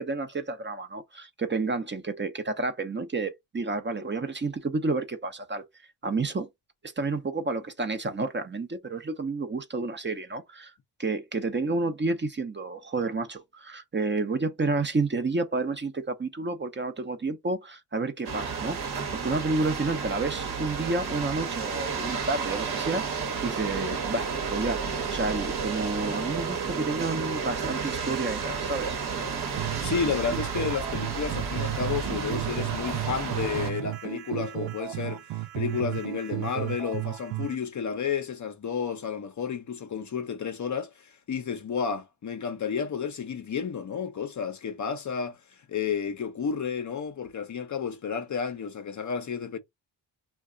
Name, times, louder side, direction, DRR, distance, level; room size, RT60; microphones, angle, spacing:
voice 1, 0.0-5.6 6.0-6.5 7.0-10.7 11.0-23.0 23.4-29.0, right 3 dB, 25° right, 0.7 m, -30 dB
sound 1, 18.2-33.7, right 5 dB, 60° right, 1.1 m, -32 dB
sound 2, 29.6-37.5, right 17 dB, 90° right, 0.5 m, -34 dB
voice 2, 29.8-45.4 45.7-49.6, left 6 dB, 40° left, 0.6 m, -31 dB
2.3 x 2.3 x 3.7 m
supercardioid pair, 55°, 44 cm